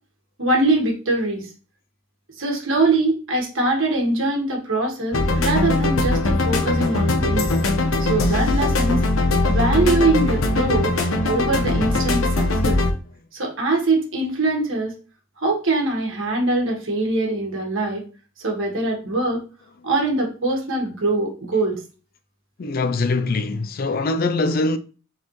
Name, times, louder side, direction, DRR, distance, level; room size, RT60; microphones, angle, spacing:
voice 1, 0.4-1.4 2.4-7.6 8.0-9.0 9.5-10.9 11.3-12.8 13.3-14.9 15.4-18.0 18.4-19.4 19.8-21.8, right 2 dB, 65° right, 1.6 m, -22 dB
sound 1, 5.1-12.9, left 2 dB, 75° left, 0.9 m, -20 dB
voice 2, 22.6-24.8, left 3 dB, 45° left, 0.4 m, -23 dB
4.1 x 4.0 x 3.2 m
head